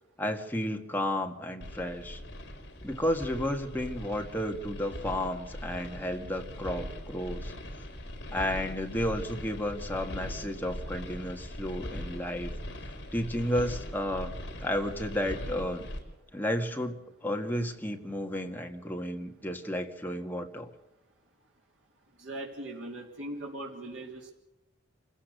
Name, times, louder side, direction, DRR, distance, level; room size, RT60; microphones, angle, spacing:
voice 1, 0.2-2.2 2.8-7.5 8.3-12.5 13.1-14.3 14.6-15.9 16.3-20.7, equal, 10° left, 3 dB, 1.7 m, -32 dB
sound 1, 1.6-16.0, equal, 60° left, 4.0 m, -40 dB
voice 2, 22.2-24.3, right 1 dB, 85° right, -1 dB, 3.5 m, -40 dB
27.0 x 15.5 x 6.6 m, 0.98 s
head